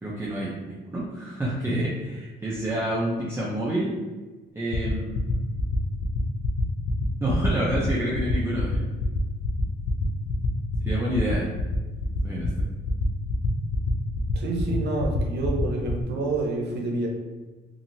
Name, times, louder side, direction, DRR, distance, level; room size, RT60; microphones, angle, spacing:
voice 1, 0.0-3.9 4.5-5.4 7.2-8.8 10.8-11.5 12.2-12.5, right 1 dB, 10° right, -6 dB, 0.6 m, -28 dB
sound 1, 4.7-16.0, left 4 dB, 75° left, 0.5 m, -27 dB
voice 2, 14.3-17.1, right 2 dB, 60° right, 0 dB, 0.8 m, -28 dB
2.9 x 2.8 x 2.7 m, 1.2 s
cardioid pair, 90°, 20 cm